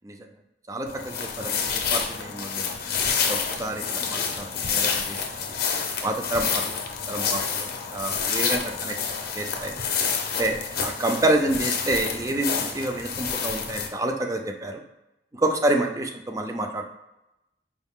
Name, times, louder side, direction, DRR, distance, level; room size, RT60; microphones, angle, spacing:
voice 1, 0.7-2.7 3.3-5.5 6.0-6.8 7.1-9.0 9.3-9.7 10.4-14.8 15.4-16.8, right 1 dB, 20° right, 4 dB, 0.4 m, -28 dB
sound 1, 0.9-13.9, left 6 dB, 55° left, 0.6 m, -28 dB
4.7 x 2.4 x 3.6 m, 0.92 s
head